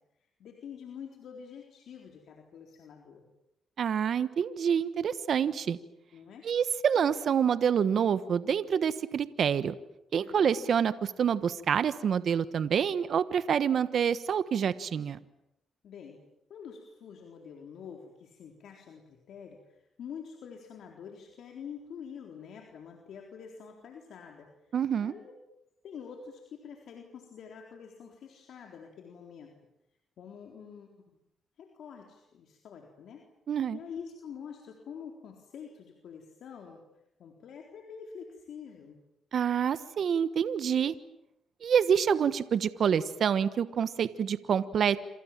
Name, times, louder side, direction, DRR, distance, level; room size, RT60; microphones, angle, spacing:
voice 1, 0.2-3.2 6.1-6.5 10.2-10.5 15.8-16.2 16.5-25.3 25.8-29.6 30.2-31.0 31.6-33.2 33.7-36.8 37.2-39.0, left 7 dB, 75° left, 2 dB, 4.0 m, -46 dB
voice 2, 3.8-5.8 6.4-9.7 10.1-15.2 24.7-25.1 33.5-33.8 39.3-40.9 41.6-45.1, right 7 dB, 65° right, 14 dB, 1.2 m, -27 dB
28.5 x 26.5 x 7.5 m, 0.85 s
cardioid pair, 70°, 0 cm